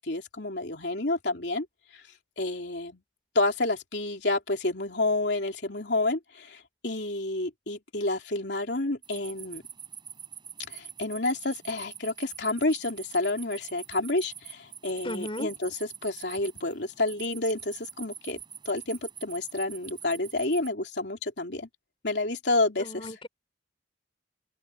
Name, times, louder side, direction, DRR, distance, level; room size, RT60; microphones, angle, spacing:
voice 1, 0.0-1.7 1.9-2.0 2.4-3.0 3.3-9.6 10.7-18.4 18.6-21.7 22.0-23.1, left 2 dB, 65° left, 3.2 m, -29 dB
sound 1, 9.0-20.7, right 8 dB, 25° right, 7.5 m, -45 dB
voice 2, 15.0-15.5 22.8-23.3, left 1 dB, 30° left, 4.3 m, -35 dB
open air
head